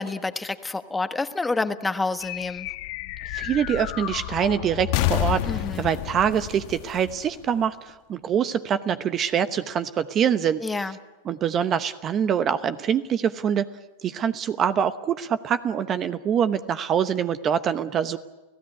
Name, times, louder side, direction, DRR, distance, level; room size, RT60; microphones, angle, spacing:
voice 1, 0.0-2.7 5.4-5.9 10.6-11.0, left 3 dB, 10° left, 9 dB, 1.3 m, -28 dB
sound 1, 2.2-7.9, left 15 dB, 55° left, 1.2 m, -30 dB
voice 2, 3.3-5.5 5.8-10.6 11.2-13.7 14.0-18.2, right 8 dB, 30° right, 12 dB, 0.9 m, -24 dB
29.5 x 16.0 x 9.8 m, 1.2 s
hypercardioid pair, 115°, 0 cm